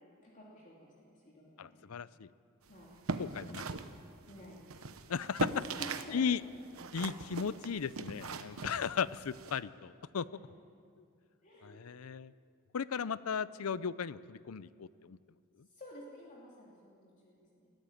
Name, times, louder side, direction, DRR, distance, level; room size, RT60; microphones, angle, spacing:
voice 1, 0.2-2.0 2.7-2.9 4.3-4.9 5.4-5.5 5.8-7.0 8.5-8.8 10.3-10.5 11.4-11.8 15.7-17.7, equal, 40° left, -4 dB, 2.8 m, -53 dB
voice 2, 1.6-2.3 3.2-3.6 5.1-5.5 6.1-6.4 6.9-10.3 11.6-12.3 12.7-15.2, left 6 dB, 90° left, 18 dB, 0.5 m, -36 dB
sound 1, 2.8-6.2 6.4-9.6, right 3 dB, 75° right, 1.0 m, -40 dB
22.0 x 14.5 x 9.1 m, 2.4 s
head